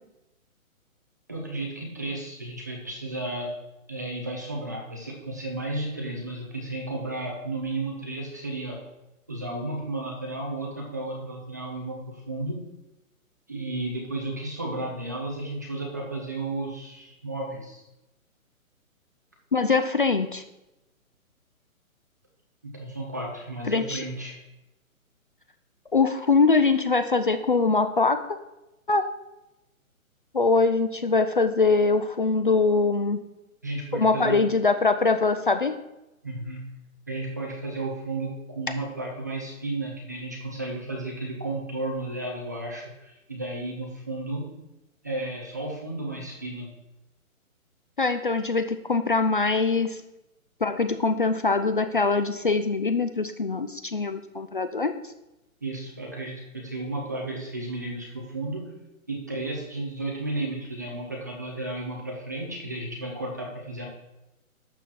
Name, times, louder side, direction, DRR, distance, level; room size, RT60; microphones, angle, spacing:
voice 1, 1.3-3.5 3.9-8.9 9.3-12.6 13.5-17.8 22.6-24.4 33.6-34.4 36.2-36.6 37.1-44.5 45.0-46.7 55.6-58.7 59.1-63.9, right 2 dB, 15° right, -1 dB, 0.7 m, -33 dB
voice 2, 19.5-20.4 23.7-24.0 25.9-28.2 28.9-29.1 30.3-33.2 33.9-35.8 48.0-50.0 50.6-54.9, left 4 dB, 40° left, 9 dB, 0.6 m, -23 dB
12.0 x 4.2 x 7.6 m, 0.94 s
hypercardioid pair, 175°, 42 cm